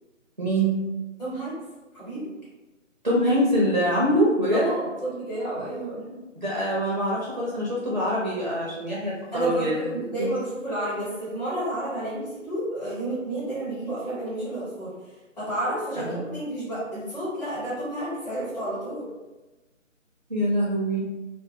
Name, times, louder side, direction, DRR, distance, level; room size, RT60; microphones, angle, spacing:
voice 1, 0.4-0.8 3.0-4.7 6.4-9.9 10.2-10.3 16.1-16.2 20.3-21.0, equal, 40° right, -6 dB, 0.4 m, -24 dB
voice 2, 1.2-1.5 1.9-2.3 4.5-6.0 9.3-14.9 15.4-19.1, right 1 dB, 35° left, -10 dB, 1.0 m, -31 dB
2.2 x 2.1 x 2.6 m, 1.1 s
figure-of-eight pair, 155°, 39 cm